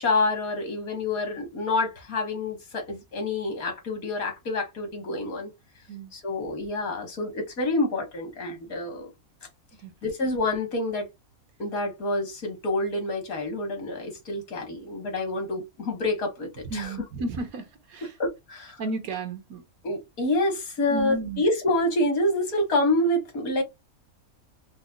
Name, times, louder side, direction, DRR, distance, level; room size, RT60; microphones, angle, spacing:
voice 1, 0.0-5.5 6.1-9.1 10.0-11.1 11.6-17.0 18.2-18.8 19.8-23.6, left 2 dB, 70° left, 1.8 m, -27 dB
voice 2, 16.7-17.7 17.9-18.1 18.8-19.6 20.9-21.4, right 2 dB, 75° right, 1.3 m, -32 dB
5.0 x 2.1 x 2.3 m
omnidirectional pair, 1.6 m